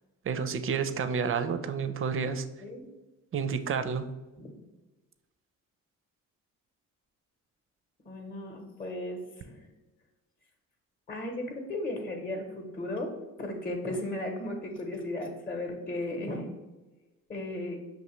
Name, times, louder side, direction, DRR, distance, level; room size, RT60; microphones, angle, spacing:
voice 1, 0.2-2.4 3.3-4.1, right 6 dB, 40° right, 10 dB, 0.5 m, -30 dB
voice 2, 8.0-9.7 11.1-13.1 13.4-16.5 17.3-17.8, left 1 dB, 25° left, 3 dB, 0.8 m, -35 dB
5.5 x 2.7 x 3.0 m, 1.2 s
supercardioid pair, 70°, 34 cm